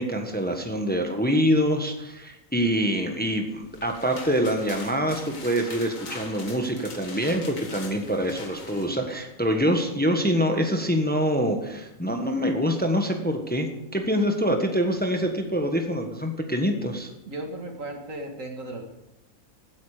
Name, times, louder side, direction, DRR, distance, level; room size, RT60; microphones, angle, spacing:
voice 1, 0.0-17.1, equal, 5° left, 4 dB, 1.3 m, -25 dB
sound 1, 3.6-8.9, left 3 dB, 75° left, 2.2 m, -42 dB
voice 2, 17.3-18.8, right 1 dB, 70° right, 3 dB, 2.3 m, -35 dB
16.5 x 9.4 x 5.0 m, 0.90 s
omnidirectional pair, 1.4 m